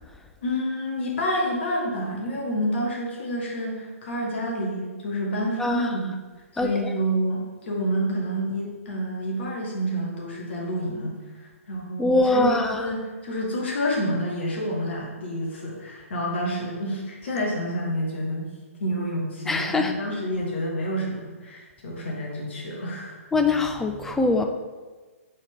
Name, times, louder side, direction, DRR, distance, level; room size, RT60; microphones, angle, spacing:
voice 1, 0.4-6.2 6.5-18.5 18.8-23.2, equal, 50° left, -2 dB, 1.5 m, -28 dB
voice 2, 5.6-5.9 6.6-6.9 12.0-12.8 19.5-19.9 23.3-24.4, left 2 dB, 5° left, 4 dB, 0.3 m, -22 dB
6.3 x 4.2 x 3.7 m, 1.3 s
figure-of-eight pair, 125°, 8 cm